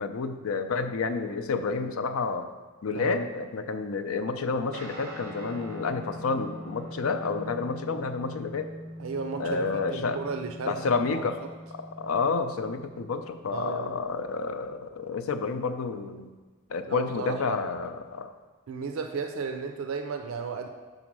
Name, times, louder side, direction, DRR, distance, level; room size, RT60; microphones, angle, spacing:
voice 1, 0.0-2.5 2.8-8.7 9.4-10.2 10.7-11.4 11.7-16.3 16.7-18.3, left 4 dB, 85° left, 9 dB, 0.5 m, -30 dB
voice 2, 2.9-3.2 9.0-11.5 13.5-14.0 16.9-17.6 18.7-20.7, right 5 dB, 75° right, 5 dB, 0.5 m, -34 dB
Guitar, 4.7-13.5, equal, 45° right, 1.3 m, -42 dB
6.2 x 3.9 x 6.0 m, 1.3 s
head